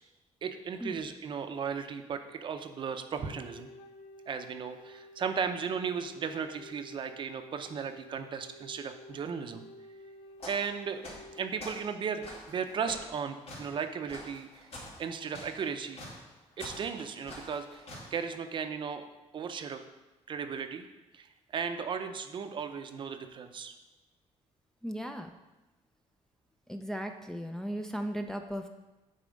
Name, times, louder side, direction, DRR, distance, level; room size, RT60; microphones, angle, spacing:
voice 1, 0.4-3.7 4.3-9.6 10.5-11.0 11.4-14.7 15.0-16.0 16.6-19.0 19.3-19.8 20.3-20.9 21.1-23.7, right 6 dB, 45° right, 8 dB, 0.6 m, -36 dB
Wind instrument woodwind instrument, 3.0-11.6, equal, 75° left, 0.6 m, -52 dB
sound 1, 10.4-10.7 11.0-11.8 12.2-18.1, left 1 dB, 55° left, 2.8 m, -45 dB
voice 2, 24.8-25.3 26.7-28.7, equal, 5° left, 4 dB, 0.4 m, -36 dB
9.3 x 4.2 x 5.2 m, 1.1 s
cardioid pair, 145°, 12 cm